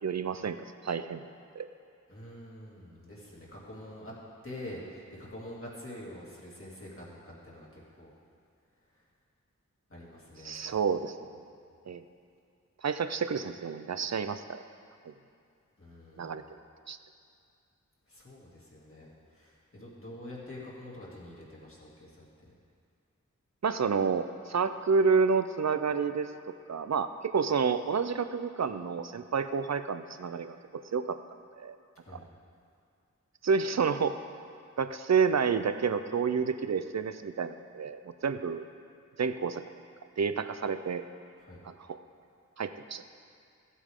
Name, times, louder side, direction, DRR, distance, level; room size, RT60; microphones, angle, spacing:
voice 1, 0.0-0.6 0.8-1.2 1.5-1.7 10.4-11.2 11.9-12.0 12.8-14.6 15.0-15.1 16.2-16.4 16.9-17.0 23.6-26.3 26.7-31.2 31.6-31.8 33.4-34.2 34.8-38.6 39.2-39.6 40.2-41.0 41.6-42.0 42.6-43.0, right 5 dB, 60° right, 11 dB, 0.6 m, -29 dB
voice 2, 2.1-4.1 4.4-8.1 9.9-10.8 15.8-16.4 18.1-22.5 32.0-32.2 41.4-41.6, left 1 dB, 45° left, -6 dB, 2.7 m, -46 dB
15.0 x 8.3 x 3.7 m, 2.4 s
wide cardioid pair, 50°, 31 cm